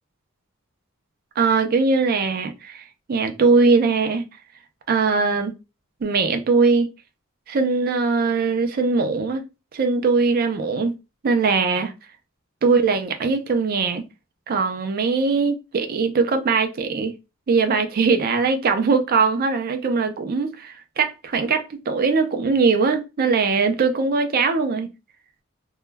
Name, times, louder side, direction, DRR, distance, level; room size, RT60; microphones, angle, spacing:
voice 1, 1.4-4.2 4.9-5.5 6.0-6.9 7.5-9.5 9.7-10.9 11.2-11.9 12.6-14.0 14.5-17.1 17.5-24.9, right 4 dB, 45° right, 0.4 m, -21 dB
2.2 x 2.1 x 3.1 m
head